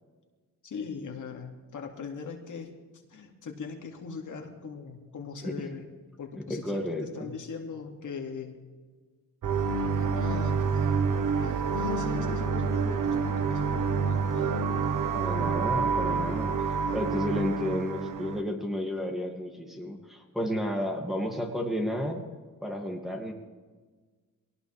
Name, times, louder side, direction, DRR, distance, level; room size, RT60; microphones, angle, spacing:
voice 1, 0.6-2.7 3.1-5.9 6.2-8.6 10.0-11.1 11.4-14.6, left 5 dB, 60° left, 2 dB, 2.5 m, -40 dB
voice 2, 6.5-7.3 15.1-16.5 16.9-22.2 22.6-23.3, left 1 dB, ahead, 0 dB, 2.5 m, -32 dB
sound 1, 9.4-18.4, right 5 dB, 65° right, 1.2 m, -28 dB
22.5 x 18.5 x 3.5 m, 1.4 s
cardioid pair, 105°, 34 cm